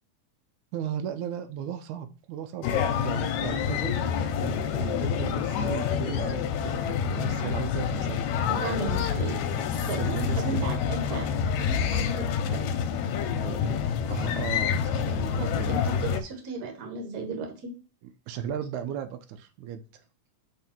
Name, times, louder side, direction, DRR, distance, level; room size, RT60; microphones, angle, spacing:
voice 1, 0.7-8.9 9.9-10.7 13.4-13.8 14.1-15.7 18.3-20.0, right 9 dB, 80° right, 9 dB, 2.0 m, -36 dB
sound 1, 2.6-16.2, left 7 dB, 80° left, 1.9 m, -27 dB
voice 2, 8.5-12.7 15.4-17.7, right 4 dB, 45° right, 3 dB, 1.4 m, -36 dB
5.6 x 3.6 x 5.9 m, 0.34 s
omnidirectional pair, 3.5 m